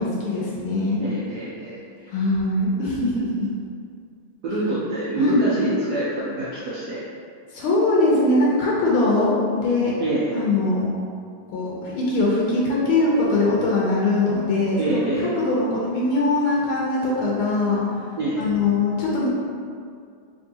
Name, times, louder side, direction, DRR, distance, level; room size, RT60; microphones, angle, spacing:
voice 1, 0.0-1.0 2.1-3.5 5.2-5.4 7.5-10.0 10.3-10.9 11.5-15.0 15.4-17.8 18.3-19.3, left 2 dB, 90° left, -5 dB, 1.5 m, -21 dB
voice 2, 1.0-2.1 4.4-7.0 10.0-10.3 14.8-15.3 18.1-18.4, right 1 dB, 75° right, -8 dB, 0.9 m, -26 dB
3.5 x 2.9 x 2.7 m, 2.2 s
omnidirectional pair, 2.2 m